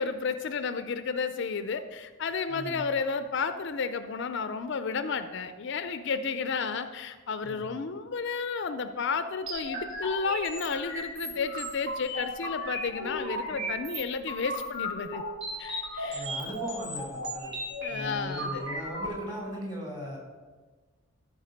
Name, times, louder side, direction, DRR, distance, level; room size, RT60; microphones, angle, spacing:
voice 1, 0.0-15.2 15.6-16.3 17.8-18.6, left 5 dB, 55° left, 10 dB, 0.4 m, -32 dB
voice 2, 2.5-2.8 7.4-7.7 13.5-13.6 16.1-17.5 17.9-20.2, equal, 20° right, -3 dB, 2.9 m, -38 dB
sound 1, 9.5-19.1, equal, 70° right, 3.3 m, -36 dB
13.5 x 4.7 x 5.1 m, 1.4 s
head